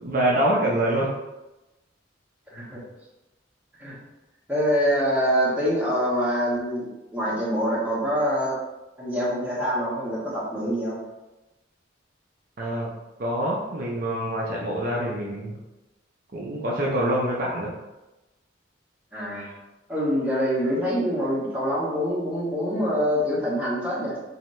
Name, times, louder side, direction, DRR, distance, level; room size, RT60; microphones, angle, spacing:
voice 1, 0.0-1.1 12.6-12.9 13.2-15.6 16.3-17.7, right 1 dB, 50° right, -4 dB, 0.6 m, -25 dB
voice 2, 2.5-2.8 3.8-4.0 4.5-8.6 9.0-11.0 19.1-19.5 19.9-24.2, equal, 5° right, -9 dB, 1.2 m, -25 dB
4.1 x 2.7 x 3.1 m, 1.0 s
head